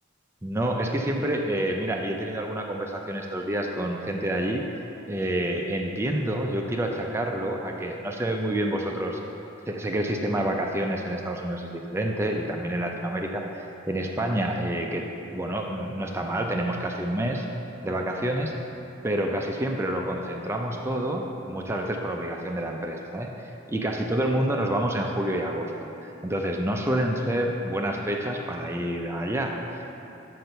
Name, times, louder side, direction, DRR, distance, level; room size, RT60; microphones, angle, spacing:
voice 1, 0.4-4.6 5.1-9.2 9.7-13.4 13.9-15.1 15.3-17.5 17.8-18.5 19.0-30.1, right 1 dB, 15° right, 1 dB, 0.4 m, -28 dB
6.0 x 5.5 x 6.7 m, 2.9 s
head